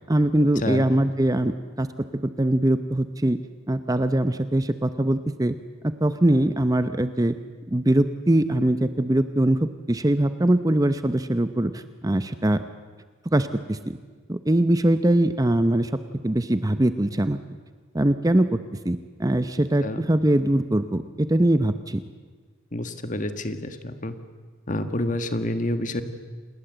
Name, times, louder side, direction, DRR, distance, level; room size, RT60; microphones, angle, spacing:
voice 1, 0.1-1.9 2.2-3.4 3.7-5.5 5.8-7.3 7.7-9.6 9.9-12.6 13.3-14.0 14.3-15.9 16.2-17.4 17.9-22.0, right 1 dB, 15° right, 11 dB, 0.7 m, -22 dB
voice 2, 22.7-24.1 24.7-26.0, left 1 dB, 40° left, 9 dB, 1.5 m, -28 dB
28.0 x 20.5 x 8.0 m, 1.5 s
head